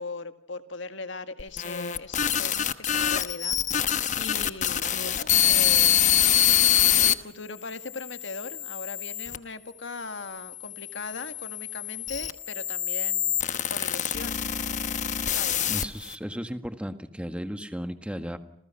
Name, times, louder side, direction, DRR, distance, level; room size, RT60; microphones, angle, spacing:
voice 1, 0.0-3.9 4.2-6.2 7.0-14.4 15.3-15.7, left 3 dB, 70° left, 9 dB, 1.9 m, -39 dB
sound 1, 1.4-7.1 7.8-9.4 10.2-16.2, left 10 dB, 40° left, 1.1 m, -25 dB
voice 2, 15.7-18.4, equal, 5° right, 8 dB, 1.7 m, -35 dB
30.0 x 27.5 x 5.8 m, 0.68 s
head